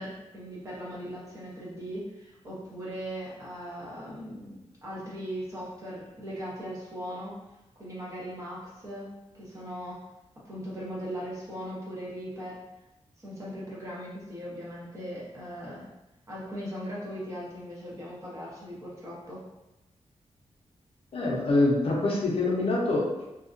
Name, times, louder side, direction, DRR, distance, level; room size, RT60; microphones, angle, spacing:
voice 1, 0.0-7.4 7.8-10.0 10.4-12.6 13.2-15.9 16.3-19.4, equal, 25° right, -7 dB, 0.8 m, -39 dB
voice 2, 21.1-23.2, left 2 dB, 60° left, -4 dB, 0.6 m, -25 dB
2.7 x 2.3 x 2.5 m, 0.99 s
wide cardioid pair, 175°, 11 cm